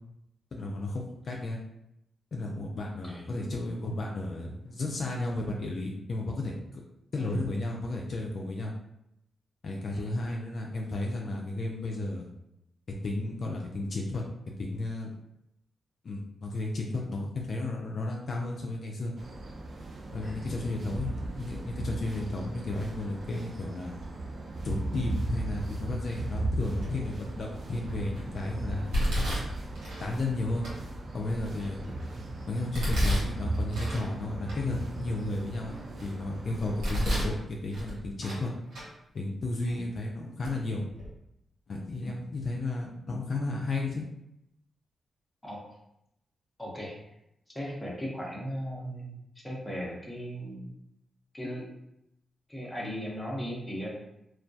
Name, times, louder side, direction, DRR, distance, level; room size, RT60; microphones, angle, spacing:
voice 1, 0.5-1.6 2.3-6.8 7.1-8.7 9.6-12.3 13.0-14.2 14.6-15.1 16.0-19.1 20.1-21.1 21.4-23.9 24.6-28.9 30.0-30.6 31.1-31.8 32.5-38.5 39.1-40.8 41.7-44.0, left 2 dB, 60° left, -1 dB, 0.3 m, -33 dB
sound 1, 19.2-37.0, right 2 dB, 55° right, 0.3 m, -37 dB
Domestic sounds home sounds, 26.8-27.2 27.7-28.2 28.9-30.1 30.6-30.7 31.3-32.1 32.7-34.1 34.5-34.6 35.1-36.1 36.6-37.4 37.7-38.4 38.7-38.9 39.7-39.8 40.4-40.5 40.9-41.1, equal, 85° right, 1.0 m, -31 dB
voice 2, 45.4-45.8 46.6-47.0 47.5-49.2 49.4-50.7 51.3-51.7 52.5-54.0, equal, 15° left, -3 dB, 0.8 m, -37 dB
2.2 x 2.1 x 2.6 m, 0.82 s
supercardioid pair, 55°, 0 cm